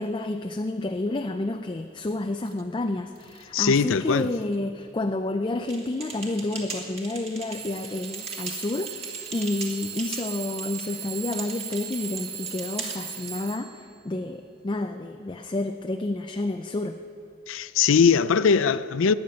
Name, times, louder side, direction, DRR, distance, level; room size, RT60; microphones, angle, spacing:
voice 1, 0.0-17.0, left 2 dB, 25° left, 0.4 m, -30 dB
Alarm / Clock, 2.5-2.6 3.2-3.6 4.2-4.6 5.4-5.5 7.5-13.9, right 8 dB, 50° right, 0.9 m, -38 dB
voice 2, 3.5-4.3 17.5-19.1, left 6 dB, 75° left, 0.5 m, -20 dB
sound 1, 5.7-13.4, right 3 dB, 30° right, 2.0 m, -40 dB
14.0 x 9.4 x 9.4 m
head